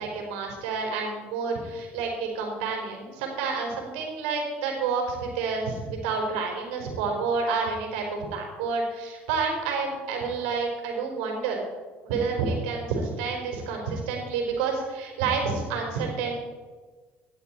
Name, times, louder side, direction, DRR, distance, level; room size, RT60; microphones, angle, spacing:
voice 1, 0.0-11.6 12.0-16.3, right 5 dB, 80° right, 1 dB, 4.4 m, -29 dB
17.5 x 11.5 x 4.4 m, 1.4 s
hypercardioid pair, 75°, 6 cm